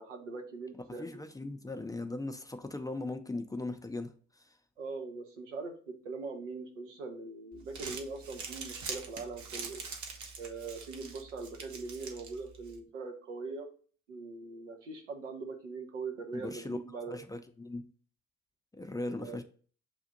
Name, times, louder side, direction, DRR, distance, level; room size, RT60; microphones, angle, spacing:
voice 1, 0.0-1.2 4.8-9.8 10.4-13.7 14.1-17.2 19.2-19.4, right 4 dB, 85° right, 0.7 m, -41 dB
voice 2, 1.0-4.5 16.3-16.8 17.1-17.9 18.7-19.4, left 2 dB, 10° left, 0.5 m, -39 dB
Crumpling crinkling, 7.5-12.8, right 5 dB, 55° right, 0.8 m, -44 dB
7.1 x 2.5 x 2.6 m
figure-of-eight pair, 45°, 35 cm